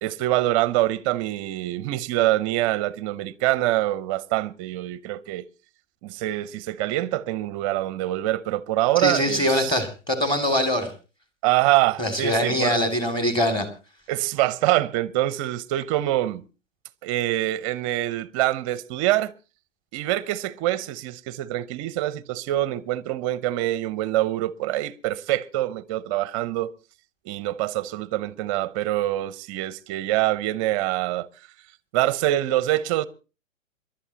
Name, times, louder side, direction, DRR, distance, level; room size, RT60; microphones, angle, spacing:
voice 1, 0.0-5.5 6.0-9.8 11.4-12.8 14.1-16.4 17.0-19.3 19.9-26.7 27.2-31.3 31.9-33.0, right 15 dB, 25° right, 0.6 m, -25 dB
voice 2, 9.0-10.9 12.0-13.7, left 1 dB, 10° left, 2.5 m, -23 dB
27.0 x 11.5 x 2.9 m
figure-of-eight pair, 120°, 39 cm